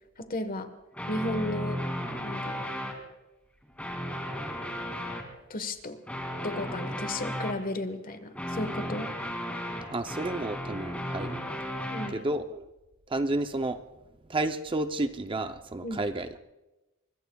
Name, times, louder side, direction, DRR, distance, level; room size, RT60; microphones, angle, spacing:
voice 1, 0.2-0.7 1.1-1.8 2.2-2.6 5.5-6.0 6.4-9.1 11.9-12.2 15.8-16.0, left 1 dB, 40° left, 9 dB, 1.2 m, -34 dB
sound 1, 0.9-2.9 3.6-5.3 6.1-7.6 8.3-12.1, equal, 5° left, 2.4 m, -34 dB
voice 2, 9.9-11.4 12.1-12.6 13.1-13.8 14.3-16.3, right 2 dB, 25° right, 8 dB, 0.6 m, -31 dB
24.0 x 22.0 x 2.3 m, 1.0 s
head